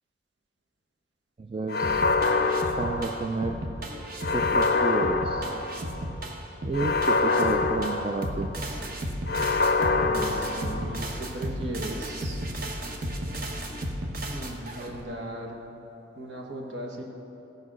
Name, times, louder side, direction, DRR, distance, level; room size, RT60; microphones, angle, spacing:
voice 1, 1.4-2.0 2.7-3.6 4.3-5.5 6.6-8.5, right 3 dB, 30° right, 4 dB, 0.3 m, -31 dB
sound 1, 1.7-3.6 4.2-6.0 6.7-8.6 9.3-11.1, left 3 dB, 50° left, 0.5 m, -26 dB
sound 2, 1.8-15.0, right 1 dB, 50° right, 0.9 m, -34 dB
voice 2, 9.9-12.4 14.3-15.6 16.2-17.0, right 1 dB, 70° right, 0 dB, 1.4 m, -37 dB
14.5 x 5.3 x 6.2 m, 2.9 s
head